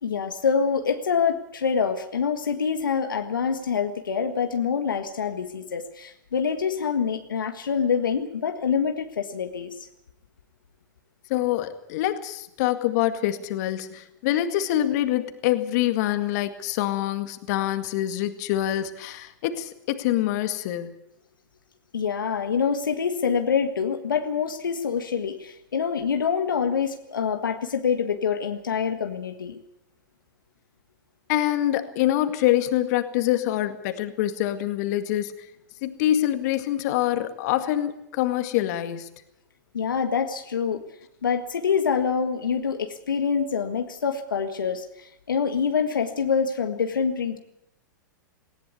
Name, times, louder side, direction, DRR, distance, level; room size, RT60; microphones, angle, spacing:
voice 1, 0.0-9.9 21.9-29.6 39.7-40.8 41.2-47.4, left 6 dB, 85° left, 6 dB, 1.7 m, -26 dB
voice 2, 11.3-21.0 31.3-35.5 35.8-39.1, left 13 dB, 55° left, 9 dB, 2.1 m, -25 dB
19.0 x 18.0 x 8.3 m, 0.81 s
hypercardioid pair, 110°, 11 cm